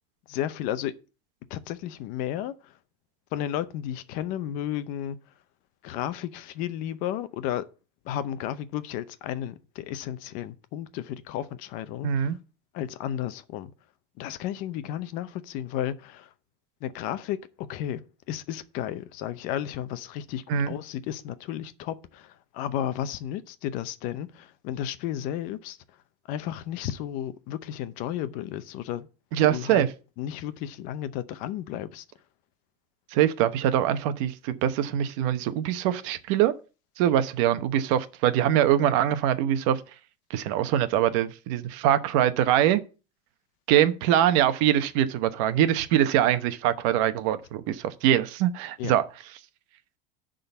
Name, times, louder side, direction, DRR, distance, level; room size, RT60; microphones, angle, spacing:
voice 1, 0.3-0.9 1.5-2.8 3.3-5.2 5.8-7.7 8.0-12.4 12.7-13.7 14.2-16.3 16.8-18.0 18.3-25.8 26.3-29.1 29.4-29.8 30.2-32.0 48.8-48.9, left 11 dB, 45° left, 0.7 m, -33 dB
voice 2, 12.0-12.4 20.5-20.7 29.3-29.9 33.1-36.5 37.0-39.8 40.3-42.8 43.7-49.0, right 11 dB, 55° right, 0.9 m, -23 dB
11.0 x 3.9 x 6.9 m
cardioid pair, 175°, 20 cm